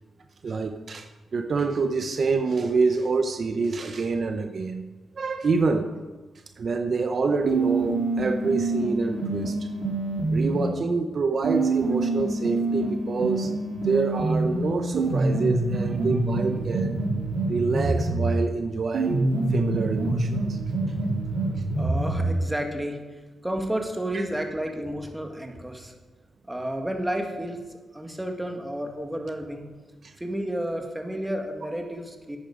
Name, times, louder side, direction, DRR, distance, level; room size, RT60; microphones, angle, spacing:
voice 1, 0.4-1.1 1.3-4.9 5.2-5.9 6.6-9.7 10.3-17.0 17.5-20.6 24.1-24.2 30.0-30.1, right 4 dB, 55° right, 6 dB, 0.8 m, -27 dB
sound 1, 7.4-10.7 11.4-18.4 18.9-22.4, right 2 dB, 85° right, 1.9 m, -26 dB
voice 2, 21.8-23.0 23.4-25.9 26.5-27.6 27.9-29.6 30.2-32.4, right 1 dB, 10° right, 3 dB, 1.7 m, -31 dB
10.5 x 9.0 x 5.1 m, 1.3 s
cardioid pair, 75°, 0 cm